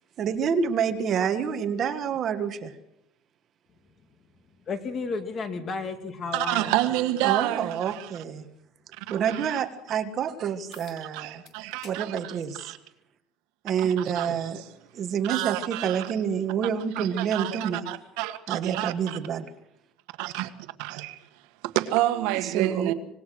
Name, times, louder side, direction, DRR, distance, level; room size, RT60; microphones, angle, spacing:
voice 1, 0.2-2.7 7.2-8.5 9.1-11.4 11.8-12.7 13.6-14.6 14.9-17.8 18.5-19.5 22.2-22.9, right 7 dB, 35° right, 1.5 m, -28 dB
voice 2, 4.7-6.8, left 4 dB, 25° left, 2.2 m, -32 dB
voice 3, 6.3-8.1 9.0-9.6 11.1-12.8 14.1-14.3 15.3-16.1 16.9-19.2 20.2-20.5 20.8-21.2 21.7-22.9, right 15 dB, 70° right, 1.7 m, -29 dB
sound 1, 10.7-11.0 11.4-12.0 12.4-12.6 13.6-13.7 18.7-18.8, left 7 dB, 45° left, 3.6 m, -50 dB
25.5 x 19.5 x 6.2 m
cardioid pair, 165°, 0 cm